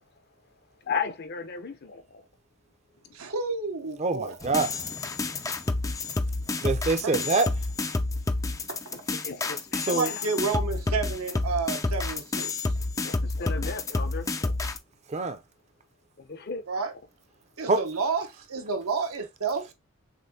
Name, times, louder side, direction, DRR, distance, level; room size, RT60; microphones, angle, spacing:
voice 1, 0.8-2.2 3.0-3.2 8.9-10.2 13.0-14.5 16.2-16.6, left 5 dB, 50° left, 0.7 m, -35 dB
voice 2, 3.1-4.3 7.0-7.2 8.7-8.8 9.9-12.5 16.7-16.9 17.6-19.7, right 4 dB, 85° right, 1.0 m, -30 dB
voice 3, 4.0-4.8 6.6-7.5 9.8-10.1 15.1-15.4 17.7-17.8, right 3 dB, 30° right, 0.5 m, -25 dB
sound 1, 4.4-14.8, left 3 dB, 15° left, 0.4 m, -29 dB
6.4 x 2.6 x 2.7 m
head